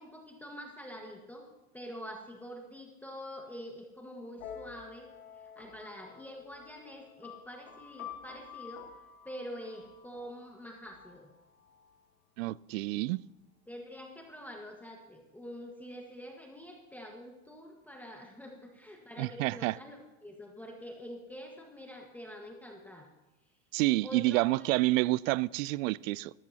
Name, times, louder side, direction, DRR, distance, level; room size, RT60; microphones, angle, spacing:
voice 1, 0.0-1.5 1.7-9.0 9.2-11.3 13.7-23.1 24.0-24.8, equal, 5° left, 1.5 m, -46 dB
sound 1, 4.4-12.0, left 8 dB, 90° left, 2.7 m, -50 dB
voice 2, 12.4-13.2 19.2-19.8 23.7-26.3, right 19 dB, 70° right, 0.5 m, -28 dB
18.0 x 14.0 x 2.9 m
supercardioid pair, 115°, 41 cm